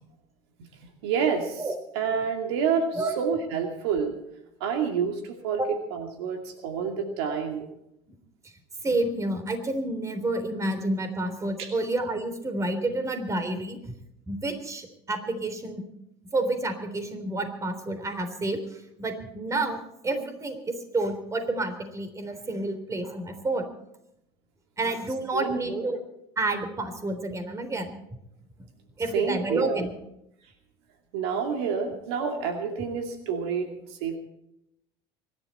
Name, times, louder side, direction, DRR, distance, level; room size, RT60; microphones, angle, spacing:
voice 1, 1.0-1.6 1.9-4.1 4.6-5.6 5.9-7.7 11.6-11.7 25.3-25.9 29.1-29.9 31.1-34.2, right 6 dB, 80° right, 4 dB, 2.5 m, -28 dB
voice 2, 8.8-13.8 14.3-15.8 16.3-19.8 20.0-23.6 24.8-26.0 26.4-28.0 29.0-29.9, right 2 dB, 25° right, 8 dB, 3.6 m, -29 dB
24.5 x 12.0 x 4.4 m, 0.81 s
hypercardioid pair, 85°, 14 cm